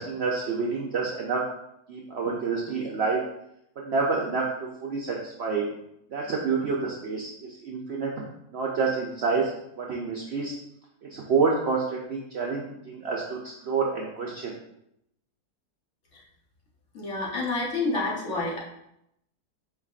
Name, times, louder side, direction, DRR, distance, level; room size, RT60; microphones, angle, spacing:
voice 1, 0.0-1.4 1.9-3.2 3.8-5.6 6.1-8.1 8.5-9.5 9.8-10.5 11.0-14.5, right 4 dB, 90° right, -2 dB, 0.5 m, -28 dB
voice 2, 16.9-18.6, left 3 dB, 50° left, -4 dB, 1.1 m, -28 dB
4.6 x 3.4 x 2.4 m, 0.78 s
omnidirectional pair, 1.8 m